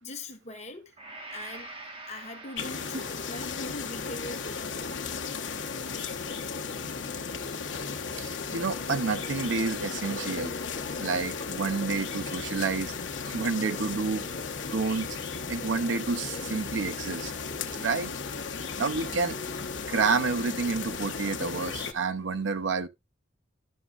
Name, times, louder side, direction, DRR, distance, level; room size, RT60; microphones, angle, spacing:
voice 1, 0.0-0.9 1.3-1.7 2.0-5.1, left 1 dB, 40° left, 1.3 m, -42 dB
Gong, 1.0-9.0, right 2 dB, 30° right, 1.3 m, -49 dB
sound 1, 2.6-21.9, left 5 dB, 85° left, 1.0 m, -35 dB
voice 2, 8.1-10.6 11.0-12.9 13.2-14.4 14.7-15.2 15.5-17.3 17.7-18.1 18.8-19.4 19.9-22.9, right 4 dB, 80° right, 0.6 m, -29 dB
11.5 x 6.1 x 2.4 m
head